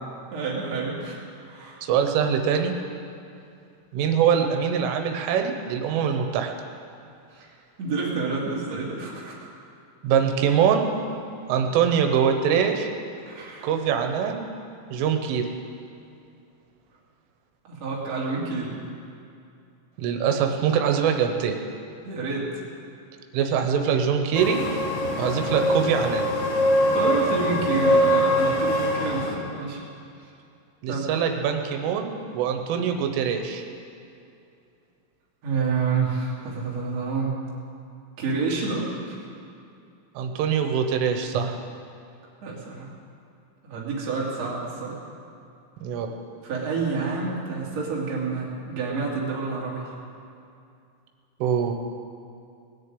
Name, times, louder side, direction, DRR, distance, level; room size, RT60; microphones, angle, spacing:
voice 1, 0.3-1.9 7.3-7.5 7.8-9.5 13.2-13.7 17.6-18.8 22.0-22.5 26.9-29.8 30.9-31.1 35.4-37.4 38.2-39.2 42.4-42.9 43.6-45.0 46.4-49.9, right 4 dB, 40° right, -4 dB, 3.0 m, -28 dB
voice 2, 1.8-2.7 3.9-6.5 10.0-10.9 11.5-12.9 13.6-14.5 14.9-15.5 20.0-21.6 23.3-24.6 25.2-26.2 30.8-33.6 40.2-41.6 45.8-46.1 51.4-51.7, right 7 dB, 90° right, 5 dB, 3.5 m, -23 dB
sound 1, 24.3-29.4, equal, 60° left, 2.5 m, -23 dB
20.0 x 6.8 x 9.1 m, 2.5 s
omnidirectional pair, 5.6 m